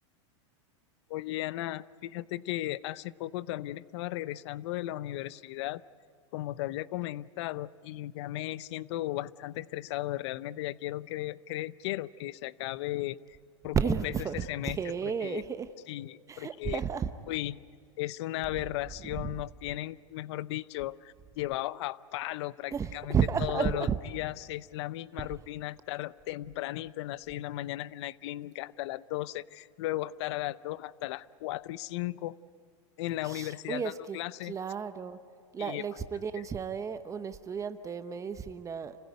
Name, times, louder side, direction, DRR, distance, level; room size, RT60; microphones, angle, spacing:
voice 1, 1.1-5.8 6.3-13.2 13.6-14.1 14.5-14.9 15.2-15.4 15.9-16.8 17.3-17.6 18.0-32.3 33.0-34.5 35.6-35.8, left 16 dB, 65° left, 18 dB, 0.7 m, -36 dB
voice 2, 13.7-15.7 16.3-17.1 19.0-19.4 22.7-24.0 25.2-25.3 33.2-35.2 35.5-39.0, right 7 dB, 20° right, 10 dB, 0.8 m, -32 dB
29.5 x 16.0 x 9.5 m, 2.1 s
supercardioid pair, 125°, 16 cm